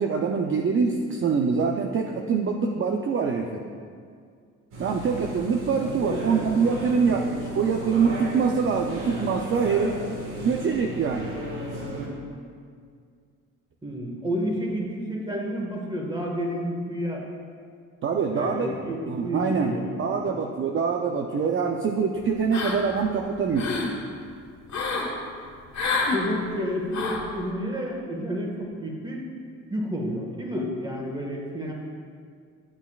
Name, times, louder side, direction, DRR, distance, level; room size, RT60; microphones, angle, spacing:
voice 1, 0.0-3.6 4.8-9.9 10.4-11.4 18.0-18.7 19.1-19.7 20.0-23.7, right 5 dB, 45° right, 3 dB, 0.6 m, -24 dB
sound 1, 4.7-12.1, right 1 dB, 85° right, 1.8 m, -35 dB
voice 2, 5.8-7.2 13.8-17.2 18.3-19.0 19.2-20.4 26.1-29.2 29.7-31.7, equal, 15° right, -1 dB, 1.6 m, -31 dB
sound 2, 22.5-23.0 23.4-23.9 24.7-25.1 25.7-26.2 26.9-27.3, left 4 dB, 65° left, 1.6 m, -27 dB
11.0 x 6.9 x 2.4 m, 2.1 s
cardioid pair, 90°, 30 cm